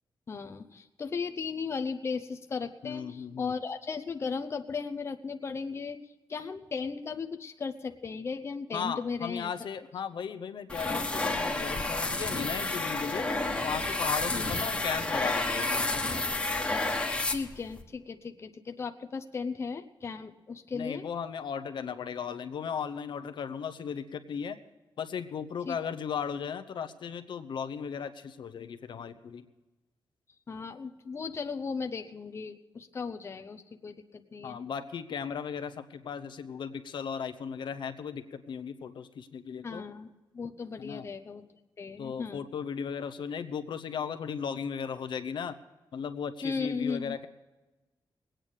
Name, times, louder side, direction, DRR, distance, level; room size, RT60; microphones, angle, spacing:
voice 1, 0.3-9.5 14.3-14.5 17.3-21.0 25.7-25.8 30.5-34.6 39.6-41.4 41.8-42.4 46.4-47.2, left 5 dB, 35° left, 7 dB, 0.7 m, -36 dB
voice 2, 2.8-3.5 8.7-13.3 13.6-16.2 20.7-24.6 25.0-29.5 34.4-39.8 40.8-41.1 42.0-45.5 45.9-47.3, left 7 dB, 70° left, 9 dB, 0.8 m, -36 dB
sound 1, 10.7-17.8, left 2 dB, 15° left, 1.4 m, -30 dB
20.5 x 9.0 x 6.5 m, 1.1 s
wide cardioid pair, 155°, 8 cm